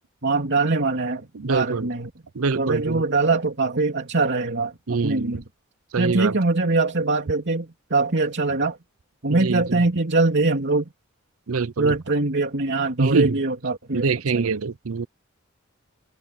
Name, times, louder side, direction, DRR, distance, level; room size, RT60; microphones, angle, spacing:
voice 1, 0.2-2.1 2.5-5.4 6.0-8.8 9.2-10.9 11.8-14.5, right 3 dB, 55° right, 3.0 m, -23 dB
voice 2, 1.3-1.9 2.3-3.0 4.9-5.4 5.9-6.4 9.3-9.8 11.5-11.9 13.0-13.4 13.9-15.1, right 4 dB, 85° right, 0.7 m, -24 dB
head